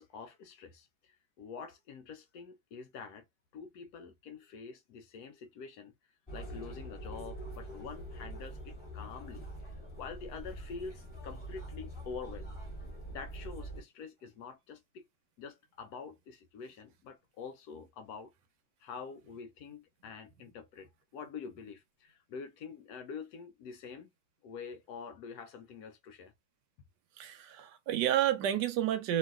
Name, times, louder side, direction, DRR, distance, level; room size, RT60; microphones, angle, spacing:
voice 1, 0.0-3.3 3.5-5.9 6.3-9.5 10.0-12.5 13.1-15.0 15.4-18.3 18.8-24.1 24.4-26.3, left 5 dB, 75° left, 1.0 m, -46 dB
sound 1, 6.3-13.8, right 1 dB, 15° left, 1.4 m, -44 dB
voice 2, 27.2-29.2, right 11 dB, 85° right, 1.3 m, -30 dB
3.1 x 2.6 x 2.4 m
omnidirectional pair, 1.8 m